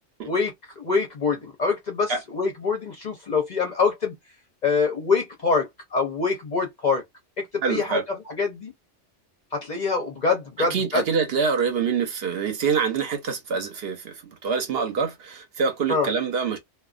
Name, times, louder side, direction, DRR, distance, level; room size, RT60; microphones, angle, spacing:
voice 1, 0.3-4.1 4.6-7.0 7.4-8.0 8.3-8.7 9.5-11.0 15.9-16.1, left 4 dB, 50° left, 0.6 m, -25 dB
voice 2, 7.6-8.0 10.6-16.6, right 5 dB, 60° right, 0.9 m, -25 dB
2.3 x 2.2 x 2.4 m
omnidirectional pair, 1.2 m